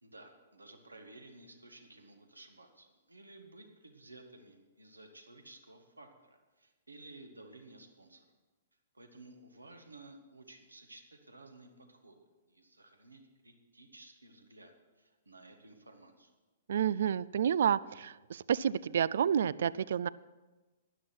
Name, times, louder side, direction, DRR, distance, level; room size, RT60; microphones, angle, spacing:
voice 1, 0.0-8.3 8.9-16.3, right 2 dB, 90° right, 5 dB, 1.6 m, -55 dB
voice 2, 16.7-20.1, right 8 dB, 60° right, 20 dB, 0.3 m, -30 dB
12.5 x 10.5 x 6.0 m, 1.2 s
figure-of-eight pair, 115°, 0 cm